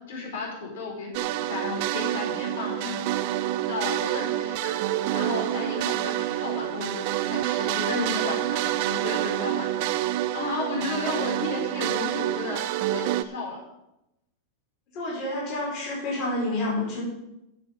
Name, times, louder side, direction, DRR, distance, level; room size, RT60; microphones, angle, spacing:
voice 1, 0.1-2.9 3.7-12.6 12.9-13.6, left 3 dB, 65° left, -2 dB, 5.0 m, -34 dB
sound 1, 1.1-13.2, right 14 dB, 45° right, 0.6 m, -28 dB
voice 2, 14.9-17.0, left 1 dB, 30° left, -4 dB, 4.9 m, -29 dB
14.0 x 7.7 x 5.5 m, 0.89 s
supercardioid pair, 175°, 0 cm